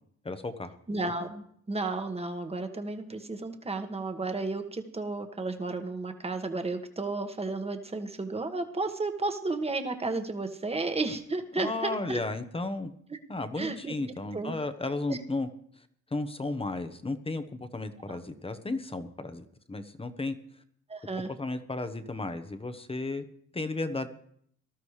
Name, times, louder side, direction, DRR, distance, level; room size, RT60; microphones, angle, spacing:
voice 1, 0.2-0.7 11.5-12.9 13.3-15.5 16.1-20.3 21.3-23.2 23.5-24.1, left 2 dB, 20° left, 9 dB, 1.1 m, -34 dB
voice 2, 0.9-12.2 13.1-13.2 13.6-14.6 15.1-15.2 18.1-18.2 20.9-21.3, right 3 dB, 20° right, 7 dB, 1.5 m, -33 dB
19.5 x 13.0 x 3.3 m, 0.65 s
cardioid pair, 90°, 30 cm